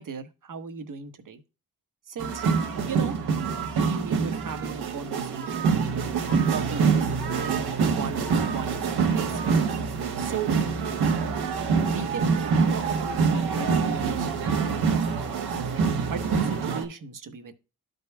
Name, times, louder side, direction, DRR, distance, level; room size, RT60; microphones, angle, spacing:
voice 1, 0.0-1.4 2.1-2.4 2.9-3.2 3.7-5.8 6.5-7.7 7.9-8.8 9.2-9.6 10.2-10.5 11.9-12.3 12.7-13.2 13.5-15.3 16.1-17.5, right 5 dB, 55° right, 1.1 m, -37 dB
sound 1, 2.2-16.8, right 5 dB, 85° right, 1.3 m, -25 dB
12.5 x 5.2 x 2.2 m
cardioid pair, 75°, 38 cm